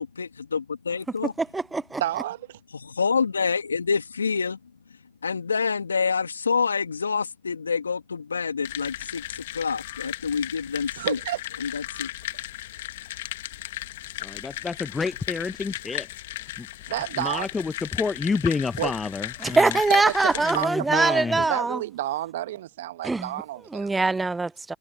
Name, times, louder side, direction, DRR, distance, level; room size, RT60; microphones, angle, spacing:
voice 1, 0.0-1.3 2.7-4.6 5.2-11.2 11.6-12.1, left 5 dB, 85° left, 2.4 m, -27 dB
voice 2, 1.4-2.0 19.4-21.8 23.0-23.3 23.7-24.8, right 3 dB, 10° right, 0.6 m, -23 dB
voice 3, 2.0-2.6 11.0-11.4 16.9-17.5 18.8-18.9 19.9-24.2, right 14 dB, 65° right, 1.4 m, -30 dB
sound 1, 8.6-20.6, left 15 dB, 65° left, 1.7 m, -36 dB
voice 4, 14.2-16.1 16.6-16.7 17.2-19.7 20.5-21.4, left 4 dB, 15° left, 1.0 m, -29 dB
figure-of-eight pair, 85°, 0 cm